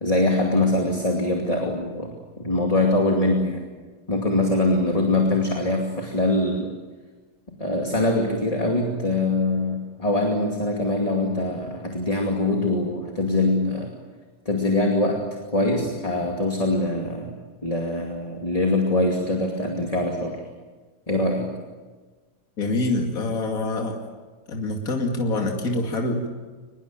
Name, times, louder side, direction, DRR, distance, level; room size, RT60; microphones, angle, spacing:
voice 1, 0.0-3.6 4.1-6.7 7.5-13.9 14.5-15.3 15.5-17.3 17.6-20.4 21.1-21.5, left 2 dB, 20° left, 1 dB, 2.5 m, -23 dB
voice 2, 22.6-24.0 24.5-26.3, left 2 dB, 60° left, 2 dB, 2.9 m, -25 dB
24.0 x 21.0 x 8.8 m, 1.3 s
omnidirectional pair, 1.7 m